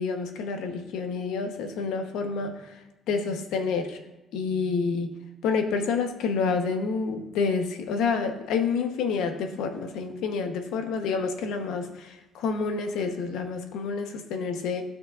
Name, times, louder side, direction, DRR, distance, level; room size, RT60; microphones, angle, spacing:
voice 1, 0.0-4.0 4.3-5.1 5.4-14.8, left 5 dB, 85° left, 5 dB, 1.0 m, -28 dB
15.5 x 5.9 x 2.5 m, 1.0 s
cardioid pair, 170°, 0 cm